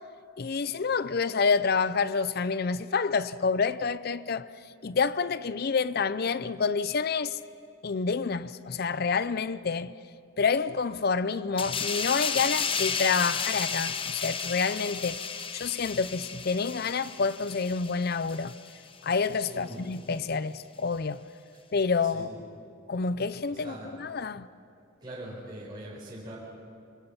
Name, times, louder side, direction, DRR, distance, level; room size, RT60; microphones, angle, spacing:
voice 1, 0.4-4.5 4.8-7.4 7.8-9.9 10.4-15.2 15.5-18.5 19.0-21.2 21.7-22.3 22.9-24.5, left 5 dB, 50° left, 0.5 m, -28 dB
sound 1, 11.6-18.8 19.1-19.3, left 6 dB, 25° left, 0.8 m, -33 dB
voice 2, 19.5-19.8 22.0-22.4 23.5-23.9 25.0-26.4, right 1 dB, 20° right, 5.1 m, -42 dB
26.0 x 24.5 x 5.8 m
head